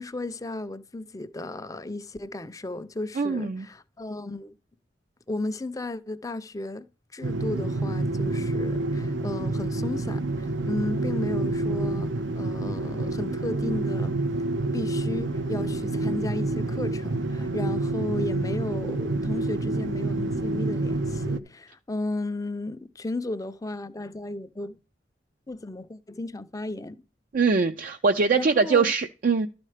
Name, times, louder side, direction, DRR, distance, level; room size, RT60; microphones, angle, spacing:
voice 1, 0.0-4.6 5.3-6.9 7.1-14.2 14.7-24.8 25.5-27.0 28.4-28.9, left 2 dB, 20° left, 0.5 m, -34 dB
voice 2, 3.2-3.7 27.3-29.5, right 4 dB, 45° right, 0.4 m, -22 dB
sound 1, 7.2-21.4, right 2 dB, 80° right, 0.7 m, -28 dB
12.5 x 4.3 x 4.9 m
head